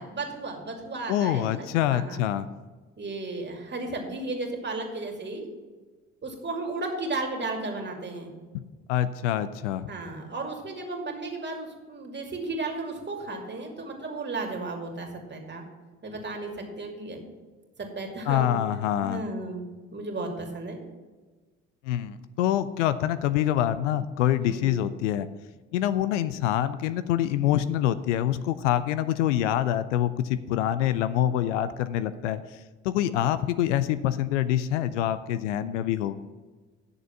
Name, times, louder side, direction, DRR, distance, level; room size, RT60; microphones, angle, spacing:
voice 1, 0.0-2.2 3.0-5.5 6.2-8.3 9.9-15.6 16.0-17.2 17.8-18.6 19.0-20.8 24.4-24.9, right 2 dB, 30° right, 1 dB, 2.5 m, -34 dB
voice 2, 1.1-2.5 8.5-8.6 8.9-9.9 18.3-19.2 21.8-25.3 25.7-32.4 32.8-36.2, left 11 dB, 80° left, 14 dB, 0.5 m, -25 dB
10.5 x 6.7 x 5.8 m, 1.3 s
hypercardioid pair, 55°, 36 cm